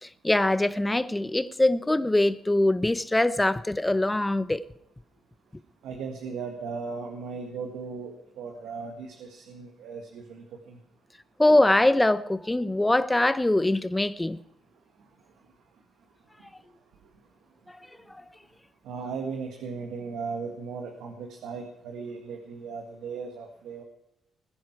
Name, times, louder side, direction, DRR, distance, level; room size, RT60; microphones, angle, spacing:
voice 1, 0.0-4.6 11.4-14.4, left 1 dB, 10° left, 0.7 m, -23 dB
voice 2, 5.8-10.8 18.8-23.8, right 5 dB, 85° right, 1.8 m, -37 dB
20.5 x 10.5 x 4.6 m
cardioid pair, 90°, 0 cm